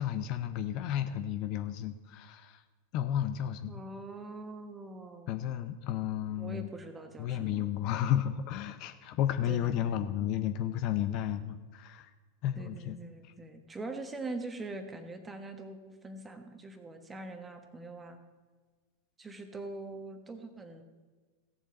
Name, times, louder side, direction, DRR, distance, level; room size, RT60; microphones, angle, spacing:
voice 1, 0.0-2.6 2.9-3.8 5.3-6.7 7.2-12.1 12.4-13.0, left 10 dB, 40° left, 9 dB, 0.6 m, -32 dB
voice 2, 3.7-5.4 6.4-7.6 9.5-9.9 12.6-18.2 19.2-20.8, right 2 dB, 15° right, 6 dB, 1.3 m, -43 dB
16.5 x 7.4 x 4.2 m, 1.4 s
figure-of-eight pair, 90°, 0 cm